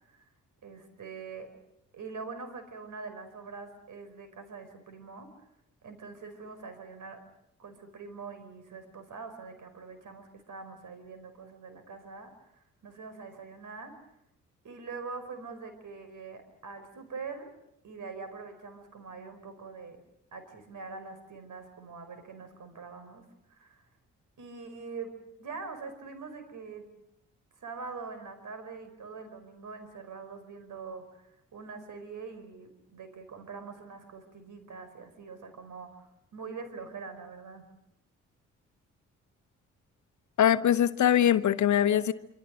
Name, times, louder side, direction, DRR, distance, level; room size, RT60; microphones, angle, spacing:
voice 1, 0.6-1.5 1.9-5.3 5.8-7.2 7.6-12.3 12.8-13.9 14.6-17.5 17.8-20.0 20.3-23.8 24.4-25.1 25.4-26.9 27.6-37.7, right 4 dB, 60° right, 5.0 m, -44 dB
voice 2, 40.4-42.1, left 10 dB, 55° left, 1.0 m, -22 dB
26.5 x 26.0 x 6.5 m
hypercardioid pair, 45°, 35 cm